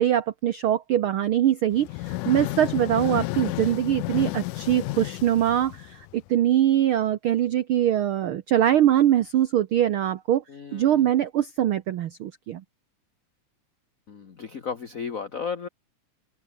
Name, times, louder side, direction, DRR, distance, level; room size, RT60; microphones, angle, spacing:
voice 1, 0.0-10.4 10.7-12.6, right 11 dB, 90° right, 1.1 m, -23 dB
sound 1, 1.7-6.3, left 21 dB, 85° left, 2.1 m, -32 dB
voice 2, 10.5-11.1 14.1-15.7, left 6 dB, 40° left, 1.2 m, -34 dB
open air
omnidirectional pair, 3.6 m